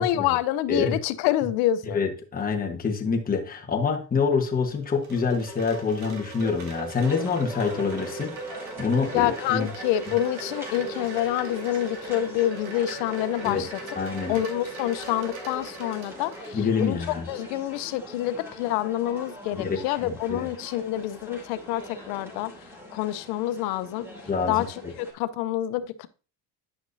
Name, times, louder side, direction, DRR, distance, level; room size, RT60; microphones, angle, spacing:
voice 1, 0.0-2.0 9.1-13.7 14.3-22.5 22.9-24.1 24.5-26.1, left 13 dB, 80° left, 0.8 m, -27 dB
voice 2, 1.9-9.7 13.4-13.6 14.0-14.4 16.5-17.2 19.6-20.4 24.3-24.9, left 5 dB, 20° left, 1.3 m, -26 dB
Wind chime, 4.6-16.8, right 3 dB, 80° right, 2.3 m, -39 dB
sound 1, 7.0-25.1, left 1 dB, 5° right, 2.5 m, -43 dB
9.7 x 6.0 x 2.7 m
cardioid pair, 125°, 44 cm